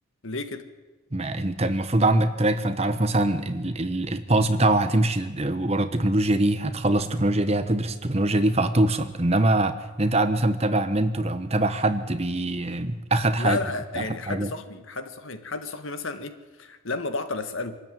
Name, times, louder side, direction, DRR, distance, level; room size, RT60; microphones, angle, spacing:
voice 1, 0.2-0.7 13.4-17.8, left 3 dB, 70° left, 9 dB, 1.6 m, -32 dB
voice 2, 1.1-13.6 13.9-14.5, right 1 dB, 30° right, 10 dB, 1.1 m, -23 dB
24.5 x 13.0 x 9.2 m, 1.3 s
head